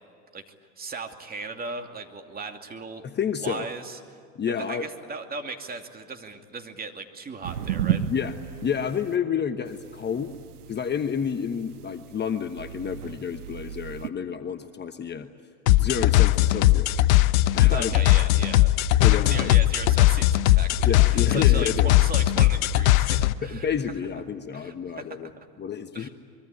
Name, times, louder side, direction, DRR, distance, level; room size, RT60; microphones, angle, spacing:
voice 1, 0.8-3.0 3.4-4.2 4.7-8.0 17.7-21.7 22.0-23.7 24.5-25.3 25.9-26.1, right 4 dB, 20° right, 5 dB, 2.6 m, -37 dB
voice 2, 3.0-3.7 4.3-4.8 8.1-8.4 8.6-10.3 10.7-15.3 15.8-17.0 17.5-17.9 19.0-19.5 20.8-22.0 23.4-25.3 25.6-26.1, left 7 dB, 25° left, 7 dB, 1.2 m, -29 dB
sound 1, 7.4-9.1 9.7-14.1, right 9 dB, 85° right, 1.3 m, -34 dB
sound 2, 15.7-23.3, left 16 dB, 65° left, 1.0 m, -19 dB
24.5 x 23.5 x 9.8 m, 2.3 s
hypercardioid pair, 100°, 45 cm